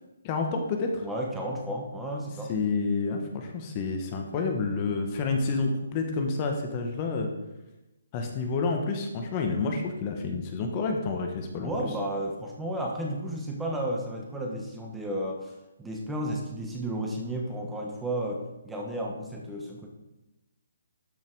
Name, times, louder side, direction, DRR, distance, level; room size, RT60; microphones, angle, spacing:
voice 1, 0.2-1.0 2.5-7.3 8.1-11.7, left 4 dB, 25° left, 3 dB, 1.3 m, -29 dB
voice 2, 1.0-2.5 11.6-19.9, right 1 dB, 5° right, -1 dB, 1.2 m, -33 dB
12.5 x 5.7 x 4.7 m, 0.98 s
hypercardioid pair, 160°, 0 cm